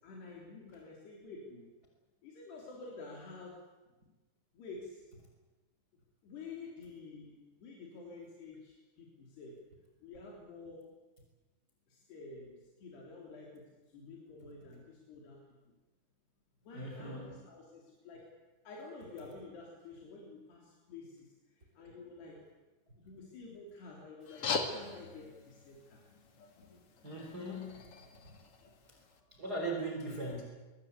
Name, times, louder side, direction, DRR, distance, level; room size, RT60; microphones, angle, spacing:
voice 1, 0.0-1.7 2.2-3.7 4.5-5.1 6.2-9.6 10.0-10.9 11.9-13.6 13.9-15.4 16.6-18.3 18.6-22.4 23.0-26.0 29.1-29.3, left 3 dB, 80° left, -2 dB, 5.9 m, -50 dB
voice 2, 16.7-17.3 27.0-27.9 29.3-30.4, right 2 dB, 25° right, 0 dB, 4.5 m, -39 dB
sound 1, 24.2-29.2, left 4 dB, 40° left, 2.5 m, -42 dB
24.0 x 23.0 x 8.3 m, 1.2 s
omnidirectional pair, 4.6 m